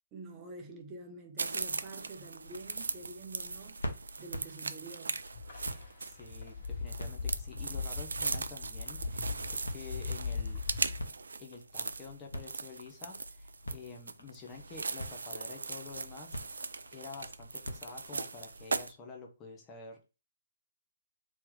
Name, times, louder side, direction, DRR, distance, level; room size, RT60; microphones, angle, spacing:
voice 1, 0.1-3.8 4.2-5.2, right 3 dB, 20° right, 0.9 m, -47 dB
sound 1, 1.4-18.9, equal, 75° left, 1.0 m, -47 dB
sound 2, 1.4-18.9, right 4 dB, 65° right, 0.3 m, -39 dB
sound 3, 5.3-11.0, left 5 dB, 45° left, 1.6 m, -40 dB
voice 2, 6.0-10.6 11.4-16.4 16.9-20.1, left 4 dB, 20° left, 0.8 m, -49 dB
3.1 x 2.9 x 3.7 m
figure-of-eight pair, 130°, 0 cm